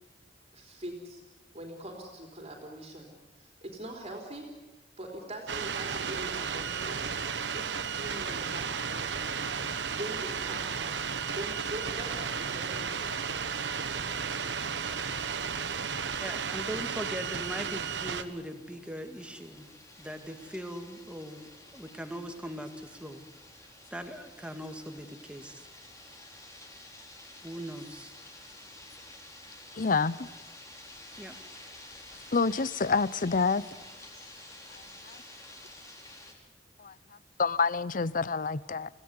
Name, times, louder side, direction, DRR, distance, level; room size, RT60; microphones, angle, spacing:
voice 1, 0.5-1.2 1.5-3.1 3.4-4.5 5.0-7.1 7.5-9.5 9.8-11.1 11.3-13.4, right 1 dB, 35° right, 1 dB, 3.6 m, -43 dB
sound 1, 5.5-18.2, right 6 dB, 75° right, 1.4 m, -33 dB
voice 2, 16.2-19.7 20.0-21.4 21.7-23.3 23.9-25.7 27.4-28.1 31.2-31.4, equal, 5° right, 5 dB, 2.2 m, -40 dB
sound 2, 18.0-36.3, left 1 dB, 20° left, 4.1 m, -51 dB
voice 3, 29.7-30.1 32.3-33.6 35.0-35.2 36.8-36.9 37.4-38.9, left 4 dB, 50° left, 19 dB, 0.7 m, -27 dB
25.5 x 17.0 x 9.7 m, 1.2 s
head